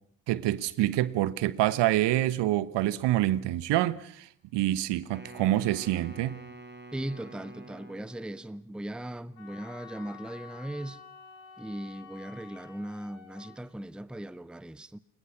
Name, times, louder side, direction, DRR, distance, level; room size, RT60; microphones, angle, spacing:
voice 1, 0.3-4.3 4.5-6.4, right 14 dB, 60° right, 1.3 m, -26 dB
Wind instrument woodwind instrument, 5.1-8.6, right 2 dB, 20° right, 4.0 m, -47 dB
voice 2, 6.9-11.0 11.6-15.0, right 1 dB, ahead, 0.9 m, -38 dB
Wind instrument woodwind instrument 2, 9.4-13.6, left 6 dB, 65° left, 5.4 m, -50 dB
29.0 x 21.5 x 6.0 m
figure-of-eight pair, 50°, 49 cm